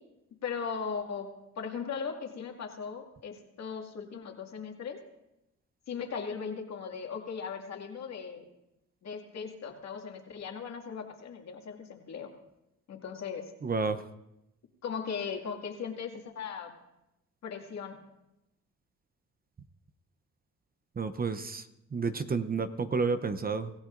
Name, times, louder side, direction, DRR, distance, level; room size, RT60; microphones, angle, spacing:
voice 1, 0.4-1.3 1.6-5.0 5.9-8.5 9.0-12.3 12.9-13.5 14.8-16.7 17.4-18.0, left 6 dB, 60° left, 2 dB, 2.2 m, -38 dB
voice 2, 13.6-14.0 21.0-21.6 21.9-23.7, right 4 dB, 30° right, 11 dB, 0.8 m, -30 dB
25.0 x 15.0 x 2.6 m, 0.90 s
cardioid pair, 90°, 30 cm